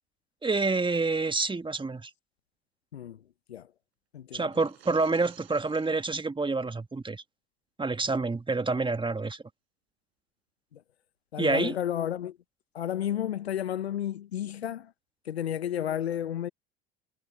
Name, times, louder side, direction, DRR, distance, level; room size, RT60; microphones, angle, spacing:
voice 1, 0.4-2.1 4.3-7.2 7.8-9.4 11.4-11.7, right 3 dB, 15° right, 1.8 m, -28 dB
sound 1, 4.4-6.2, right 15 dB, 80° right, 4.5 m, -55 dB
voice 2, 11.3-12.4 12.7-14.9 15.3-16.5, left 10 dB, 90° left, 0.9 m, -32 dB
hypercardioid pair, 65°, 31 cm